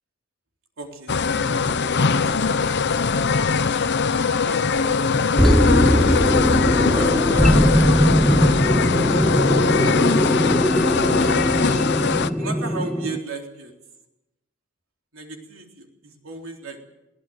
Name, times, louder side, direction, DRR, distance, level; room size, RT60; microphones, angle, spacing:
voice 1, 0.8-1.1 1.4-1.7 2.1-3.2 4.4-5.0 6.6-8.0 8.3-8.4 9.5-10.7 12.4-13.7 15.1-16.8, right 2 dB, 70° right, 2 dB, 3.8 m, -36 dB
sound 1, 1.1-12.3, left 5 dB, 55° left, 0.8 m, -21 dB
sound 2, 1.7-2.3 2.8-2.9 5.4-13.2, equal, ahead, 0.7 m, -19 dB
22.0 x 17.0 x 8.0 m, 0.94 s
head